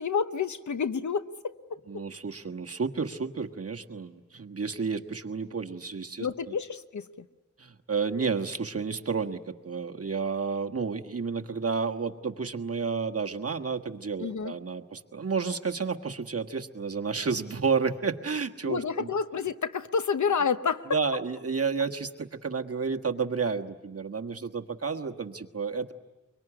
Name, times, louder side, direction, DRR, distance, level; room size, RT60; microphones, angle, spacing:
voice 1, 0.0-2.0 6.2-7.3 14.2-14.5 18.7-21.0, left 6 dB, 85° left, 11 dB, 1.0 m, -29 dB
voice 2, 1.9-6.3 7.6-19.1 20.9-25.9, right 5 dB, 55° right, 4 dB, 1.5 m, -31 dB
24.0 x 23.5 x 10.0 m, 1.2 s
wide cardioid pair, 80°, 29 cm